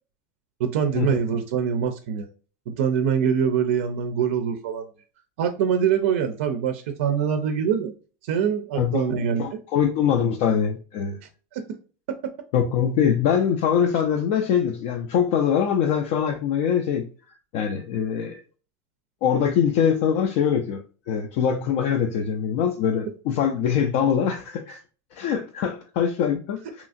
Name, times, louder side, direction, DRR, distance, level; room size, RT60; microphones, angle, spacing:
voice 1, 0.6-2.3 2.7-4.9 5.4-7.9 8.2-9.6 11.5-11.6, right 7 dB, 80° right, 0.4 m, -24 dB
voice 2, 8.8-9.1 9.4-11.2 12.5-17.0 17.5-18.4 19.2-24.8 25.1-26.6, left 8 dB, 55° left, 0.3 m, -23 dB
2.8 x 2.4 x 2.4 m
supercardioid pair, 160°, 7 cm